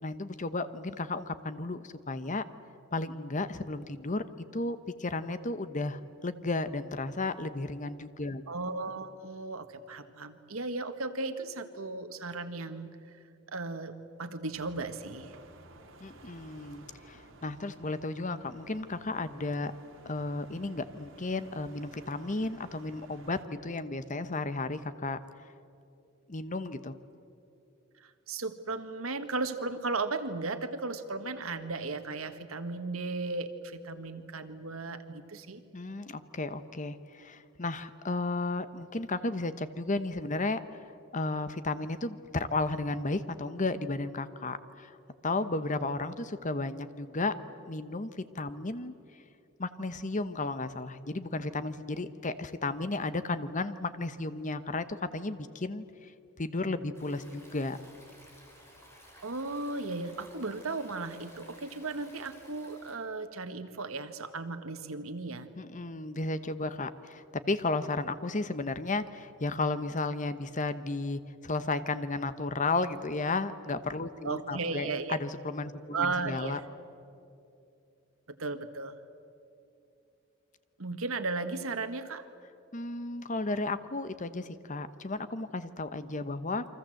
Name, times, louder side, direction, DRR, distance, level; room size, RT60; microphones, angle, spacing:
voice 1, 0.0-2.4 2.9-4.2 4.5-8.4 16.0-19.7 20.0-25.2 26.3-26.9 35.7-40.6 41.1-44.9 45.2-47.3 47.7-48.9 49.6-54.9 55.1-56.1 56.4-57.8 65.6-76.6 82.7-86.6, left 2 dB, 40° left, 12 dB, 1.0 m, -33 dB
voice 2, 8.5-12.9 13.5-13.9 14.2-15.3 28.0-35.6 59.2-65.5 74.2-75.2 75.9-76.6 78.4-79.0 80.8-82.2, right 3 dB, 90° right, 8 dB, 1.7 m, -35 dB
sound 1, 14.5-23.4, right 2 dB, 70° right, 3.1 m, -54 dB
Stream, 56.9-62.9, equal, 10° left, 5.0 m, -56 dB
29.0 x 24.5 x 7.8 m, 2.7 s
head